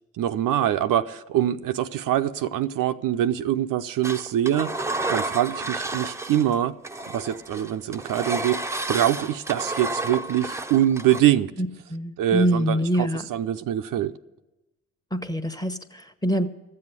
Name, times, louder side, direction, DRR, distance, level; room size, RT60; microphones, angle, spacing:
voice 1, 0.1-6.7 7.1-11.5 12.2-14.1, right 11 dB, 60° right, 0.6 m, -24 dB
Engine, 4.0-6.6 6.8-11.2, right 2 dB, 10° right, 0.6 m, -31 dB
voice 2, 11.6-13.2 15.1-16.5, right 1 dB, 10° left, 1.1 m, -25 dB
13.5 x 7.7 x 9.6 m
hypercardioid pair, 55°, 37 cm